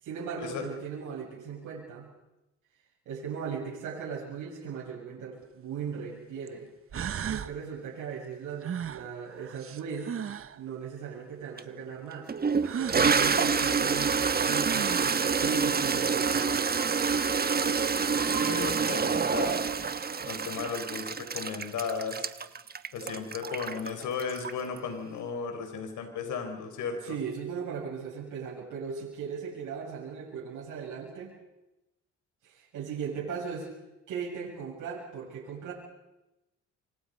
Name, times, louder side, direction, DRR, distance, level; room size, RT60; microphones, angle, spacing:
voice 1, 0.0-2.1 3.1-6.7 7.2-12.3 12.8-16.6 27.0-31.4 32.4-33.7 34.1-35.7, right 6 dB, 80° right, -5 dB, 7.5 m, -38 dB
sound 1, 5.4-5.5 6.5-6.6 6.9-7.6 8.6-10.6 12.6-13.0 14.3-14.4 14.6-15.3, right 8 dB, 45° right, 1.1 m, -35 dB
Toilet flush, 11.6-11.7 12.3-24.8, right 5 dB, 30° right, 1.2 m, -27 dB
voice 2, 18.1-19.6 20.3-22.2 22.9-27.2, left 5 dB, 80° left, 6 dB, 4.8 m, -35 dB
27.0 x 25.0 x 5.4 m, 0.96 s
cardioid pair, 90°, 30 cm